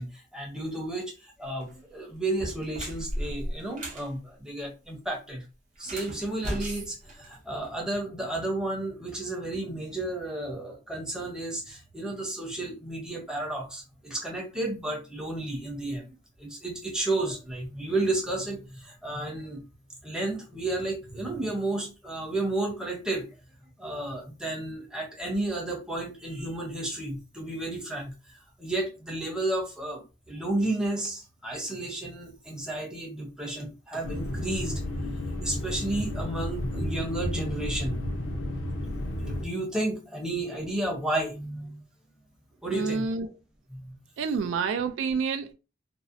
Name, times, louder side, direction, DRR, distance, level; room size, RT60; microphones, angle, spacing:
voice 1, 0.0-5.4 5.8-19.6 20.0-23.2 23.8-28.1 28.6-34.8 35.4-38.0 38.5-38.6 39.2-41.8 42.6-43.0 43.7-43.9 44.4-44.5, right 2 dB, 5° right, 0.6 m, -32 dB
sound 1, 1.5-1.7 2.3-4.1 5.7-7.8, equal, 40° right, 0.7 m, -36 dB
sound 2, 34.0-39.5, left 1 dB, 85° left, 0.5 m, -32 dB
voice 2, 42.7-43.3 44.2-45.5, right 5 dB, 85° right, 0.3 m, -28 dB
2.6 x 2.0 x 2.5 m
head